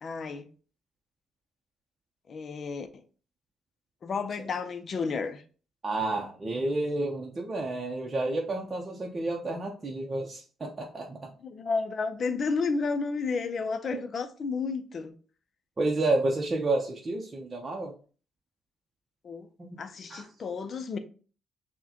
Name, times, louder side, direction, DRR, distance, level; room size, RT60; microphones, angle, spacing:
voice 1, 0.0-0.5 2.3-3.0 4.0-5.4 11.4-15.1 19.2-19.5 19.8-21.0, left 4 dB, 50° left, 0.5 m, -32 dB
voice 2, 5.8-11.3 13.9-14.0 15.8-17.9 19.6-19.8 20.1-20.3, right 2 dB, 30° right, 0.7 m, -30 dB
5.9 x 2.2 x 2.9 m
cardioid pair, 90°, 0 cm